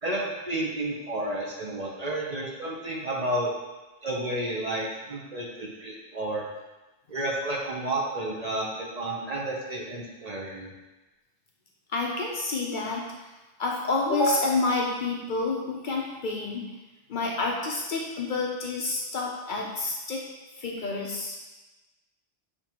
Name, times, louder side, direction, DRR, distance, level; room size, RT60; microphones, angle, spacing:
voice 1, 0.0-3.5 4.0-6.4 7.1-10.7, right 1 dB, 45° right, -3 dB, 0.7 m, -31 dB
voice 2, 11.9-13.3 13.6-16.6 17.1-20.2 20.5-21.4, left 3 dB, 55° left, -1 dB, 0.6 m, -28 dB
6.5 x 2.9 x 2.8 m, 1.1 s
omnidirectional pair, 1.1 m